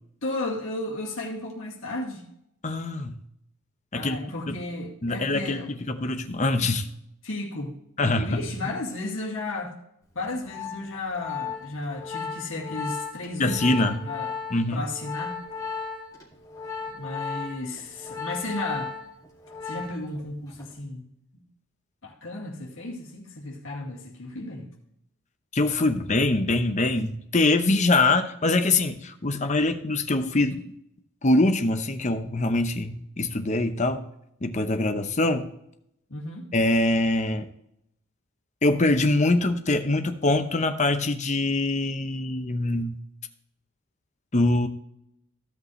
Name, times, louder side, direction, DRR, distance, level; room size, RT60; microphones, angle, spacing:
voice 1, 0.2-2.2 3.9-5.7 7.2-9.7 10.1-14.3 14.7-15.4 16.9-18.9 19.6-21.1 22.0-24.7 36.1-36.5, left 2 dB, 60° left, -2 dB, 2.3 m, -34 dB
voice 2, 2.6-3.2 3.9-4.2 4.5-4.6 5.0-6.9 8.0-8.4 13.4-14.0 14.5-14.8 25.5-30.7 31.2-34.0 34.4-35.5 36.5-37.5 38.6-42.9 44.3-44.7, left 2 dB, 35° left, 8 dB, 0.8 m, -23 dB
Organ, 10.2-20.2 20.5-20.8, left 5 dB, 15° left, 2.3 m, -35 dB
15.5 x 5.5 x 3.2 m, 0.76 s
head